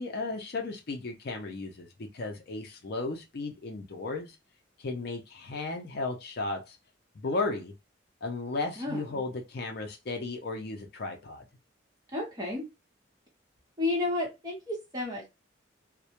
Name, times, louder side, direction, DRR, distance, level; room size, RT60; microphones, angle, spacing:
voice 1, 0.0-4.4 4.8-6.8 7.2-7.7 8.2-11.4, left 3 dB, 55° left, 0.5 m, -35 dB
voice 2, 8.8-9.2 12.1-12.7 13.8-15.3, left 2 dB, 20° right, 0.9 m, -32 dB
2.2 x 2.1 x 2.8 m
head